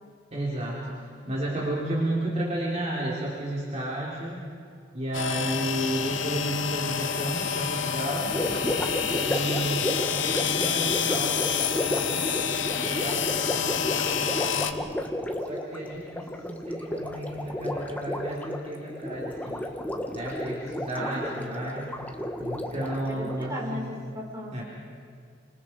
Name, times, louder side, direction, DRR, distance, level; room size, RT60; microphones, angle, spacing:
voice 1, 0.3-4.5 4.9-8.4 9.1-12.3 12.8-14.9 15.4-19.7 20.1-21.9 22.4-23.9 24.5-24.6, right 1 dB, 35° right, -6 dB, 4.4 m, -32 dB
sound 1, 5.1-14.7, left 7 dB, 85° left, 1.4 m, -28 dB
Gurgling, 8.3-23.5, left 1 dB, 10° left, 1.6 m, -33 dB
voice 2, 21.0-21.5 23.0-24.6, left 1 dB, 20° right, -3 dB, 6.0 m, -37 dB
29.5 x 26.5 x 5.0 m, 2.2 s
head